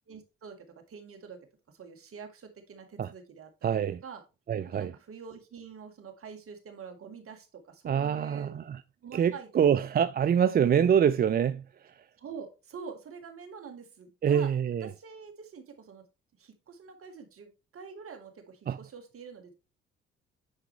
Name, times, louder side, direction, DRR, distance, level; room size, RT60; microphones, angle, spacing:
voice 1, 0.1-1.5 1.7-3.8 4.0-4.2 4.6-8.5 9.0-9.9 12.2-14.5 14.8-16.1 16.4-19.5, right 6 dB, 50° right, 1.9 m, -46 dB
voice 2, 3.6-4.0 4.5-4.9 7.9-8.8 9.1-11.6 14.2-14.9 18.7-18.8, right 8 dB, 30° right, 0.4 m, -25 dB
9.7 x 4.8 x 3.2 m
hypercardioid pair, 50°, 29 cm